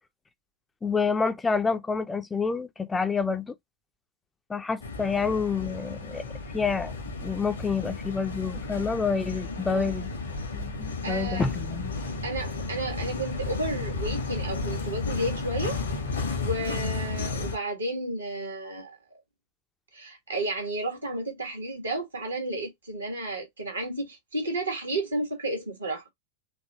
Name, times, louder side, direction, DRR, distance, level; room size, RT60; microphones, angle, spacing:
voice 1, 0.8-3.5 4.5-6.2 6.5-6.9 7.2-10.1 10.5-11.9, left 5 dB, 15° left, 0.5 m, -28 dB
sound 1, 4.8-17.6, left 3 dB, 75° left, 1.3 m, -33 dB
voice 2, 11.0-11.5 12.2-15.8 16.4-19.0 19.9-26.0, right 1 dB, 80° right, 1.9 m, -32 dB
4.4 x 2.8 x 3.0 m
figure-of-eight pair, 90°, 0 cm